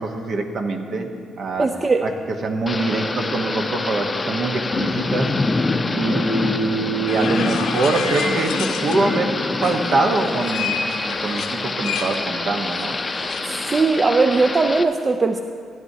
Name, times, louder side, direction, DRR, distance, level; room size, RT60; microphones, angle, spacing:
voice 1, 0.0-1.7 2.0-2.1 2.4-5.3 5.9-13.0, right 3 dB, 60° right, 4 dB, 1.0 m, -24 dB
voice 2, 1.6-2.1 13.5-15.4, right 3 dB, 30° right, 7 dB, 0.4 m, -19 dB
Thunder / Rain, 2.7-14.8, left 3 dB, 25° left, 0.5 m, -26 dB
sound 1, 7.1-9.2 9.5-13.4, left 6 dB, 85° left, 0.8 m, -30 dB
15.5 x 10.5 x 2.8 m, 2.2 s
cardioid pair, 90°, 0 cm